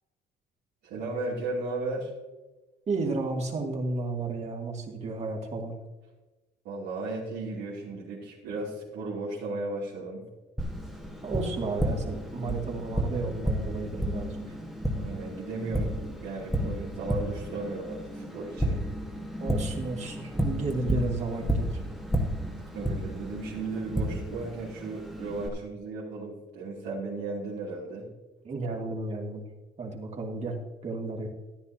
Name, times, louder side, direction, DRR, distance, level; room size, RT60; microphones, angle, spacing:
voice 1, 0.8-2.1 6.6-10.2 14.9-16.0 16.2-18.8 22.7-28.1, right 3 dB, 85° right, -7 dB, 2.8 m, -35 dB
voice 2, 2.9-5.7 11.2-14.4 19.4-21.8 28.4-29.4 29.8-31.3, right 3 dB, 40° right, 0 dB, 2.4 m, -33 dB
Tap, 10.6-25.5, right 1 dB, ahead, 1.5 m, -32 dB
13.5 x 10.5 x 2.8 m, 1.1 s
cardioid pair, 110°, 17 cm